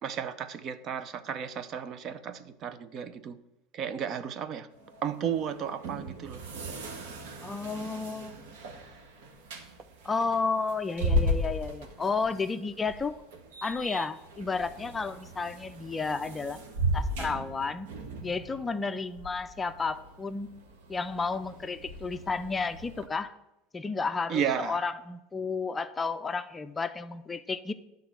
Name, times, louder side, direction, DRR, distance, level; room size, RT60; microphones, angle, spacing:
voice 1, 0.0-3.4 3.7-4.7 5.0-6.4 24.3-24.8, right 8 dB, 45° right, 12 dB, 0.6 m, -33 dB
sound 1, 4.7-23.1, equal, 80° right, 1.5 m, -36 dB
voice 2, 7.4-8.6 10.0-13.2 13.6-16.6 16.9-17.9 18.2-20.6 20.9-23.4 23.7-27.7, left 4 dB, 15° left, 10 dB, 0.5 m, -32 dB
10.0 x 3.8 x 7.3 m, 0.91 s
supercardioid pair, 120°, 0 cm